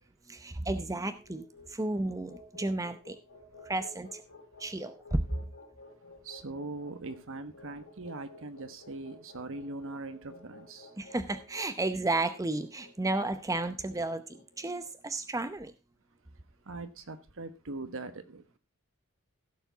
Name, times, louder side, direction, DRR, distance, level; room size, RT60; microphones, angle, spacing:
voice 1, 0.3-3.2 3.7-4.2 4.6-5.4 11.0-15.7, right 2 dB, 15° right, 0.7 m, -33 dB
sound 1, 0.6-14.9, left 3 dB, 60° left, 3.6 m, -53 dB
voice 2, 6.2-10.9 16.7-18.4, right 2 dB, 65° right, 1.3 m, -41 dB
15.5 x 7.0 x 4.0 m
head